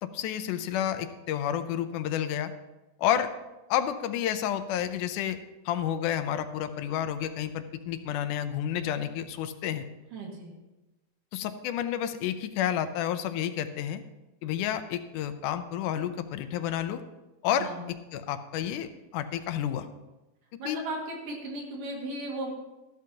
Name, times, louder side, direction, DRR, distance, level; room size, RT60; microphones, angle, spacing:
voice 1, 0.0-2.5 3.0-3.3 3.7-5.4 5.7-9.9 11.3-14.0 14.4-17.0 17.4-17.7 18.1-19.9 20.7-20.8, left 10 dB, 80° left, 10 dB, 2.2 m, -30 dB
voice 2, 10.1-10.5 17.5-17.8 20.6-22.5, right 1 dB, 85° right, 0 dB, 3.7 m, -36 dB
14.5 x 12.0 x 2.9 m, 1.0 s
omnidirectional pair, 3.6 m